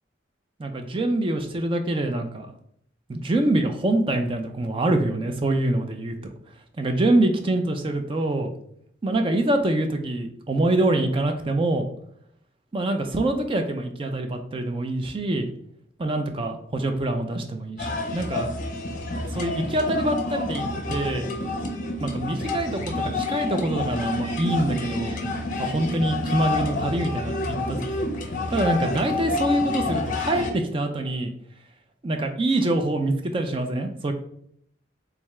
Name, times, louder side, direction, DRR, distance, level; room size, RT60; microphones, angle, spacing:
voice 1, 0.6-2.5 3.1-6.1 6.8-8.5 9.0-11.9 12.7-15.5 16.0-18.5 19.3-21.2 22.0-22.8 23.2-25.2 25.6-28.1 28.5-31.3 32.0-34.1, right 1 dB, 25° right, 5 dB, 0.4 m, -25 dB
sound 1, 17.8-30.5, left 2 dB, 40° left, 0.5 m, -28 dB
3.6 x 3.4 x 3.1 m, 0.67 s
head